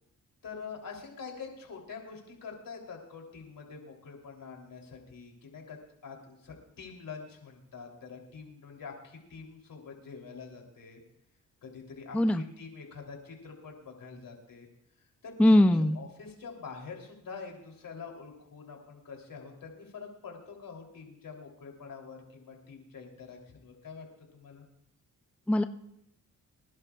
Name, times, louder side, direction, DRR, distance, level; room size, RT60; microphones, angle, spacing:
voice 1, 0.4-11.0 11.6-14.7 15.2-24.1 24.3-24.6, left 5 dB, 70° left, 1 dB, 3.3 m, -45 dB
voice 2, 15.4-16.0 25.5-25.6, left 1 dB, 5° left, 9 dB, 0.5 m, -21 dB
25.0 x 11.0 x 2.4 m, 0.77 s
cardioid pair, 70°, 34 cm